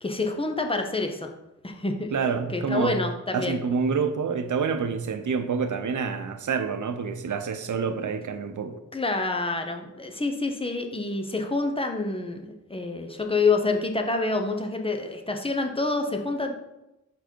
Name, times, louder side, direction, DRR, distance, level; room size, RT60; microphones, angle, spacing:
voice 1, 0.0-1.3 1.6-3.6 8.9-16.5, left 3 dB, 20° left, 4 dB, 0.8 m, -27 dB
voice 2, 2.1-3.0 3.3-8.8, right 5 dB, 80° right, 8 dB, 0.6 m, -27 dB
5.5 x 4.6 x 4.5 m, 0.93 s
wide cardioid pair, 85°, 30 cm